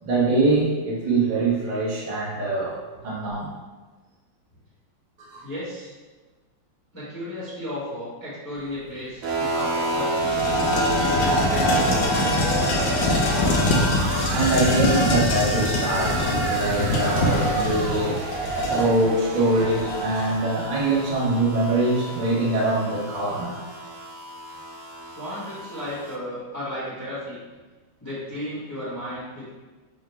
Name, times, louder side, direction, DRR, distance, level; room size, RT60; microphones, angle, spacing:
voice 1, 0.0-3.5 5.3-5.4 14.3-18.2 18.7-23.6, right 2 dB, 50° right, -6 dB, 0.5 m, -23 dB
voice 2, 5.4-5.9 6.9-10.5 11.0-12.5 25.1-27.4 28.0-29.5, left 1 dB, 15° left, -9 dB, 0.7 m, -34 dB
sound 1, 9.2-9.3 9.7-20.4, left 1 dB, 75° left, 1.2 m, -24 dB
sound 2, 9.2-26.2, right 2 dB, 75° right, 1.3 m, -31 dB
5.4 x 2.1 x 3.3 m, 1.3 s
omnidirectional pair, 2.4 m